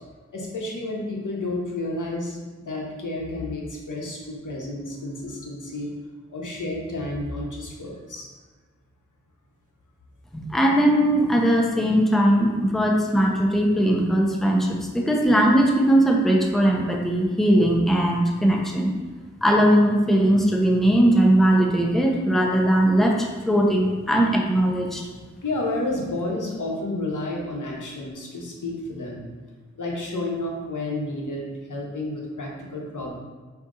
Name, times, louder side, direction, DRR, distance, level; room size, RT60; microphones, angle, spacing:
voice 1, 0.3-5.9 6.3-8.3 25.4-29.2 29.8-33.1, left 2 dB, 75° left, -2 dB, 1.0 m, -31 dB
voice 2, 10.3-18.9 19.4-25.0, right 1 dB, ahead, -1 dB, 0.7 m, -19 dB
5.1 x 2.8 x 3.7 m, 1.4 s
wide cardioid pair, 60°, 31 cm